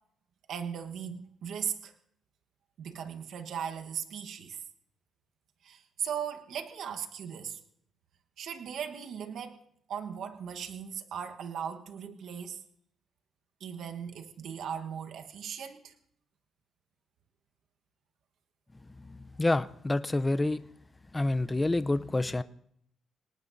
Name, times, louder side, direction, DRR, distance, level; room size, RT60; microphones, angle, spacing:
voice 1, 0.5-1.9 2.8-4.6 5.6-7.6 8.4-9.6 9.9-12.6 13.6-15.9, right 8 dB, 70° right, 5 dB, 1.2 m, -38 dB
voice 2, 19.0-20.6 21.1-22.4, left 2 dB, 15° left, 12 dB, 0.5 m, -28 dB
26.0 x 18.5 x 2.7 m, 0.69 s
cardioid pair, 90°, 0 cm